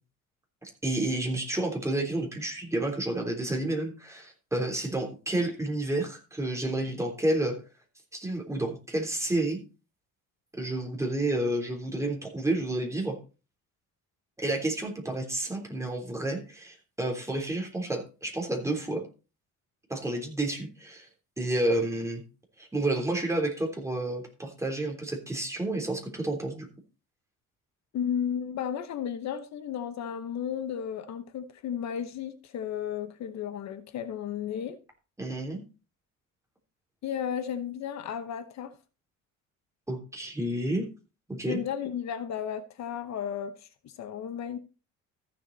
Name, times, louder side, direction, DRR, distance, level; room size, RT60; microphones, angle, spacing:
voice 1, 0.6-7.5 8.1-9.6 10.5-13.2 14.4-19.0 19.9-21.1 21.4-22.2 22.6-26.7 35.2-35.6 39.9-40.8 41.3-41.6, right 1 dB, 10° right, 3.4 m, -30 dB
voice 2, 27.9-34.8 37.0-38.7 41.4-44.6, left 8 dB, 60° left, 1.0 m, -34 dB
14.5 x 7.3 x 4.0 m
cardioid pair, 130°, 31 cm